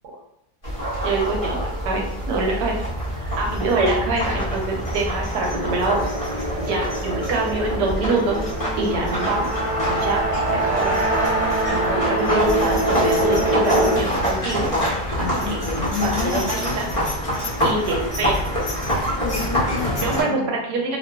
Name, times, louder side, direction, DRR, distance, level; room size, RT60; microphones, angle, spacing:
sound 1, 0.6-20.2, equal, 55° left, 0.3 m, -26 dB
voice 1, 1.0-2.8 3.2-6.1 6.6-8.4 8.8-9.5 9.9-10.2 10.5-11.0 11.7-14.7 15.2-15.3 16.0-16.9 17.6-18.5 20.0-21.0, right 2 dB, 75° right, 0 dB, 1.1 m, -25 dB
sound 2, 5.4-14.0, right 1 dB, 35° right, 0.9 m, -24 dB
voice 2, 15.2-16.5 19.0-20.6, left 6 dB, 70° left, -2 dB, 0.9 m, -30 dB
2.8 x 2.2 x 2.2 m, 0.81 s
omnidirectional pair, 1.9 m